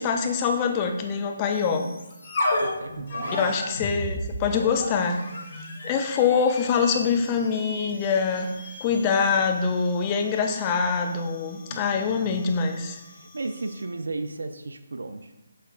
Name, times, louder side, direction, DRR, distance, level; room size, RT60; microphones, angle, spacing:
voice 1, 0.0-1.9 3.3-5.3 5.8-13.0, left 5 dB, 25° left, 4 dB, 0.4 m, -24 dB
sound 1, 1.5-14.0, left 1 dB, 60° left, 1.1 m, -35 dB
voice 2, 2.6-3.5 11.7-12.5 13.1-15.3, right 3 dB, 75° right, 8 dB, 0.3 m, -35 dB
5.5 x 3.2 x 2.4 m, 0.92 s
figure-of-eight pair, 150°, 0 cm